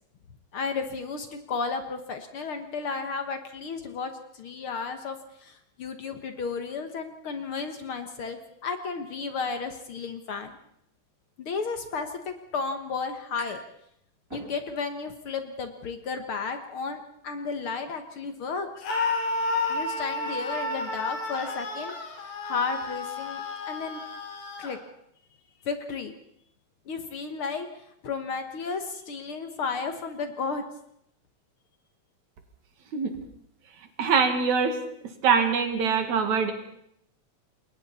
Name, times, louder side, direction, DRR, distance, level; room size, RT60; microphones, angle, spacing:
voice 1, 0.5-10.6 11.4-13.6 14.3-19.3 19.7-21.9 22.2-24.0 24.6-24.8 25.6-26.1 26.9-27.7 28.0-30.6, left 5 dB, 55° left, 7 dB, 1.9 m, -33 dB
sound 1, 13.4-13.8 14.1-15.0, right 1 dB, 20° right, 7.1 m, -45 dB
Screaming, 18.8-24.8, left 3 dB, 75° left, 3.9 m, -31 dB
voice 2, 34.0-34.7 35.2-36.5, right 6 dB, 75° right, 6 dB, 3.3 m, -23 dB
28.0 x 22.0 x 4.2 m, 0.74 s
omnidirectional pair, 3.3 m